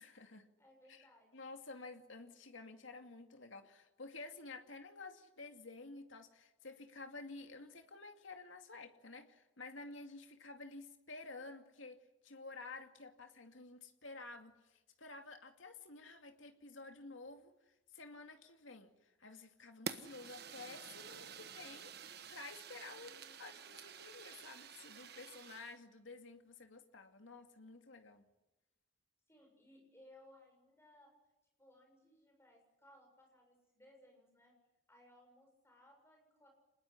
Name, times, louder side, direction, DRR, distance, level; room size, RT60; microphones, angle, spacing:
voice 1, 0.0-0.5 0.9-1.1 1.3-23.1 23.4-28.3, left 3 dB, 75° left, 5 dB, 2.5 m, -52 dB
voice 2, 0.6-1.5 22.8-23.7 29.3-31.1 31.6-34.5 34.9-36.5, left 1 dB, 15° left, 2 dB, 7.0 m, -64 dB
Fire, 19.9-25.8, right 6 dB, 55° right, 1.3 m, -49 dB
26.0 x 20.0 x 10.0 m, 0.98 s
head